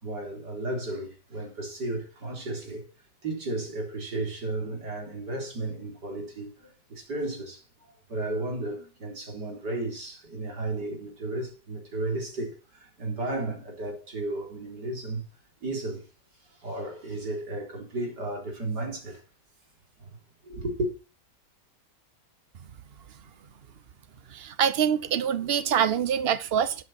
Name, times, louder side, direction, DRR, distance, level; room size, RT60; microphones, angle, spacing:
voice 1, 0.0-2.8 3.2-7.6 8.1-15.3 15.6-16.0 16.6-19.2 20.0-20.1 20.4-20.9, right 2 dB, 70° right, 4.6 m, -33 dB
voice 2, 24.3-26.8, right 8 dB, 45° right, 0.9 m, -25 dB
13.0 x 9.6 x 4.4 m
omnidirectional pair, 1.9 m